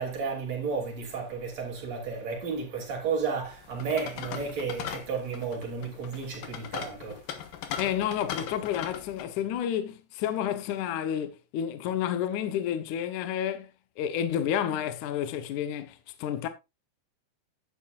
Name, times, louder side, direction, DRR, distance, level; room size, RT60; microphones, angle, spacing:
voice 1, 0.0-7.5, right 5 dB, 40° right, 3.7 m, -33 dB
sound 1, 3.5-9.3, left 9 dB, 70° left, 2.4 m, -39 dB
voice 2, 7.8-13.7 14.0-16.5, left 10 dB, 85° left, 1.7 m, -30 dB
11.5 x 9.8 x 2.5 m
omnidirectional pair, 5.3 m